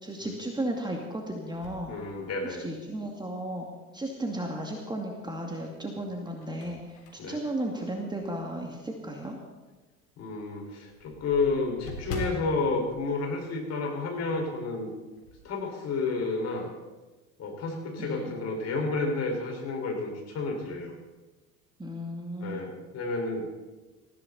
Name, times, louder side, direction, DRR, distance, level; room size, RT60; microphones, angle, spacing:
voice 1, 0.0-1.9 2.4-3.7 3.9-9.4 18.0-18.4 21.8-22.6, right 1 dB, 10° right, 1 dB, 2.3 m, -34 dB
sound 1, 1.5-2.9 3.4-3.5 5.0-5.5 6.0-8.6 9.1-9.2 9.6-9.7 9.9-10.0 10.3-14.1 14.3-14.6 14.9-15.5, left 2 dB, 65° left, 3.5 m, -43 dB
voice 2, 1.9-2.6 7.2-7.4 10.2-14.9 15.4-16.7 17.4-20.9 22.4-23.5, left 3 dB, 35° left, 1 dB, 5.1 m, -31 dB
20.0 x 15.0 x 4.1 m, 1.2 s
figure-of-eight pair, 75°, 43 cm